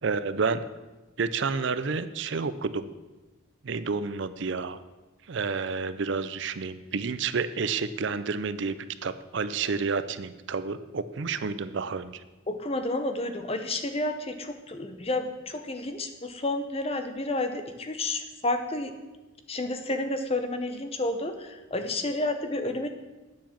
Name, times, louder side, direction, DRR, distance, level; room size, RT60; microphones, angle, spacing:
voice 1, 0.0-0.7 1.2-2.9 3.6-4.8 5.3-12.2, right 5 dB, 55° right, 13 dB, 0.5 m, -30 dB
voice 2, 12.5-18.9 19.5-22.9, left 2 dB, 25° left, 7 dB, 0.9 m, -30 dB
9.2 x 7.6 x 7.3 m, 1.1 s
head